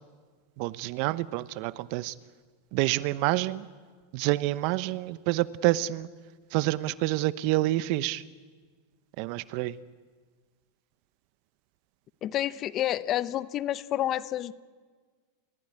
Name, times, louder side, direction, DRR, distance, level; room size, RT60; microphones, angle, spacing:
voice 1, 0.6-2.1 2.7-3.7 4.1-6.1 6.5-8.2 9.2-9.8, right 17 dB, 55° right, 16 dB, 0.9 m, -28 dB
voice 2, 12.2-14.5, left 12 dB, 40° left, 16 dB, 0.8 m, -29 dB
29.0 x 16.0 x 9.8 m, 1.5 s
hypercardioid pair, 120°, 0 cm